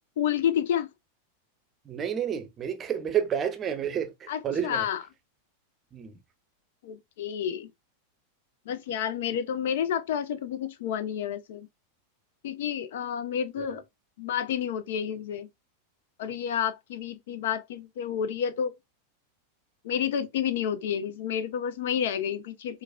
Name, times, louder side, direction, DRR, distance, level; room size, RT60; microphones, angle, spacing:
voice 1, 0.2-0.9 4.3-5.0 6.8-7.7 8.7-11.7 12.4-13.8 14.2-15.5 16.2-18.7 19.8-22.8, left 9 dB, 55° left, 0.3 m, -30 dB
voice 2, 1.9-4.9 5.9-6.1 13.6-13.7, right 8 dB, 25° right, 0.6 m, -30 dB
4.5 x 2.1 x 2.2 m
figure-of-eight pair, 90°, 0 cm